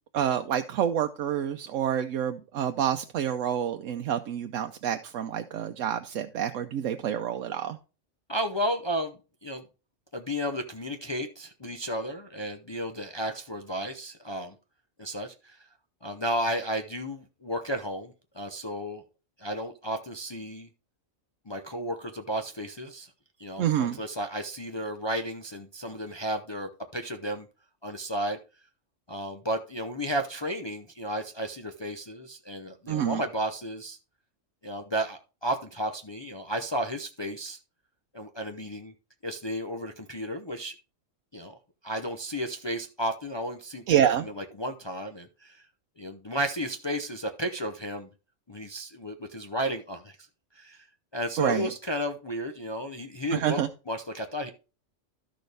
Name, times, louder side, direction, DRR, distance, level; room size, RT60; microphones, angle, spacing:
voice 1, 0.1-7.8 23.6-24.0 32.9-33.2 43.9-44.3 51.4-51.7 53.3-53.7, right 10 dB, 85° right, 6 dB, 1.0 m, -27 dB
voice 2, 8.3-9.2 9.4-9.6 10.1-14.5 15.0-15.6 16.0-19.0 19.4-20.7 21.5-23.1 23.4-27.5 27.8-28.4 29.1-34.0 34.6-37.6 38.1-38.9 39.2-40.7 41.3-41.6 41.8-44.1 44.4-45.7 46.0-48.1 48.5-50.2 50.5-50.9 51.1-53.6 53.9-54.5, equal, 30° left, 4 dB, 0.6 m, -33 dB
12.5 x 6.5 x 3.4 m, 0.33 s
omnidirectional pair, 1.3 m